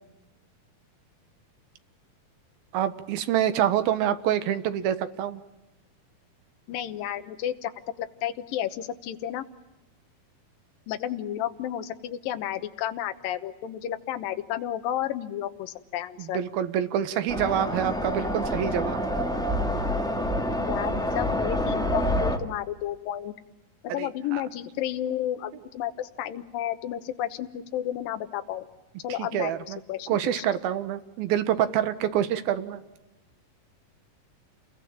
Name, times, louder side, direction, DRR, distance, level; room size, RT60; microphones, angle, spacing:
voice 1, 2.7-5.4 16.2-19.0 24.0-24.4 29.2-29.8 30.1-32.8, right 10 dB, 80° right, 11 dB, 3.2 m, -26 dB
voice 2, 6.7-7.7 8.0-9.4 10.9-16.4 20.6-23.3 23.8-28.7 29.0-29.5 29.9-30.1 30.3-30.4, left 11 dB, 75° left, 8 dB, 2.8 m, -32 dB
sound 1, 17.3-22.4, equal, ahead, 1.0 m, -27 dB
29.5 x 21.5 x 8.8 m, 0.99 s
omnidirectional pair, 4.3 m